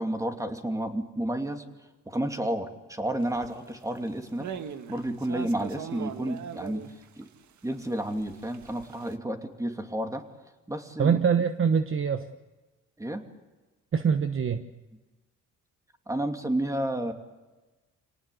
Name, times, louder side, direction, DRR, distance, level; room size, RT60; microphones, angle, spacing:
voice 1, 0.0-1.8 2.1-4.5 4.9-6.8 7.2-7.3 7.6-10.2 10.7-11.2 13.0-13.2 16.1-17.1, right 1 dB, 10° right, 5 dB, 2.8 m, -31 dB
sound 1, 3.3-3.5 3.9-4.1 4.4-7.2 7.9-9.1, right 8 dB, 70° right, 1.7 m, -40 dB
voice 2, 11.0-12.3 13.9-14.6, right 6 dB, 45° right, 9 dB, 1.2 m, -24 dB
27.0 x 19.0 x 8.4 m, 1.2 s
cardioid pair, 90°, 30 cm